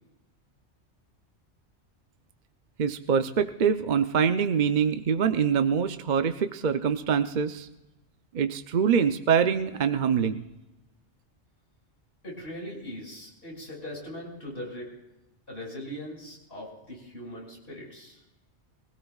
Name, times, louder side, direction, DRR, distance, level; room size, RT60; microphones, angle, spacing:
voice 1, 2.8-7.7 8.3-10.4, right 7 dB, 50° right, 9 dB, 0.7 m, -24 dB
voice 2, 12.2-14.9 15.5-18.2, equal, 50° left, -3 dB, 6.5 m, -40 dB
24.0 x 16.5 x 2.4 m, 0.95 s
omnidirectional pair, 1.2 m